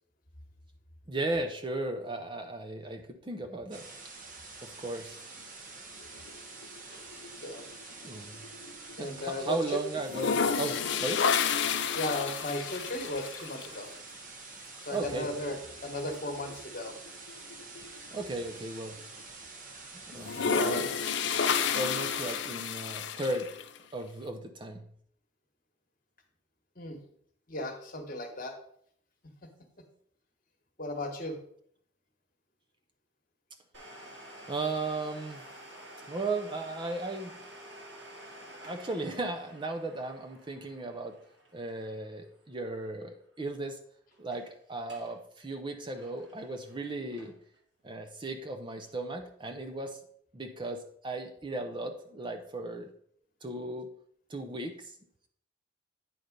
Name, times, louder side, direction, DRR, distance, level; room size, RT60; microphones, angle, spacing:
voice 1, 1.1-3.9 4.6-5.2 8.0-8.4 9.0-11.2 14.9-15.3 18.1-19.0 19.9-20.9 21.7-23.5 23.9-24.8 34.5-35.4 36.1-37.3 38.5-41.2 41.5-43.8 44.2-47.4 47.8-50.0 50.3-52.9 53.4-53.9 54.3-54.9, right 2 dB, 25° right, 6 dB, 0.5 m, -36 dB
sound 1, 3.7-22.4, right 3 dB, 40° right, 1.0 m, -47 dB
sound 2, 6.0-6.8 7.1-9.1 9.4-9.5 10.0-13.7 15.2-15.3 15.7-15.8 16.1-18.5 19.0-19.1 20.1-23.8, left 6 dB, 60° left, 0.5 m, -31 dB
voice 2, 9.0-9.8 11.9-13.9 14.8-16.9 26.8-27.0 27.5-28.5 29.4-29.5 30.8-31.4, left 1 dB, 45° left, 4 dB, 1.3 m, -36 dB
Domestic sounds home sounds, 33.7-43.2 43.4-43.5 44.1-44.5 44.8-45.2 45.5-47.6 48.0-48.1 48.8-48.9, right 1 dB, 60° right, 2.0 m, -50 dB
9.2 x 4.1 x 5.1 m, 0.65 s
head